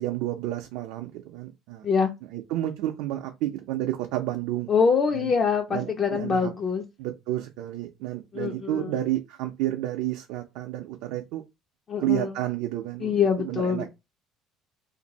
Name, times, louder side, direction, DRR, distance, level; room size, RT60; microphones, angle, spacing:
voice 1, 0.0-1.9 2.3-4.7 5.1-5.3 5.7-6.5 7.0-11.4 12.0-13.9, right 14 dB, 80° right, 0.5 m, -30 dB
voice 2, 4.7-6.8 8.3-8.9 11.9-12.3 13.0-13.9, left 6 dB, 25° left, 0.4 m, -24 dB
2.6 x 2.5 x 4.0 m
cardioid pair, 175°, 0 cm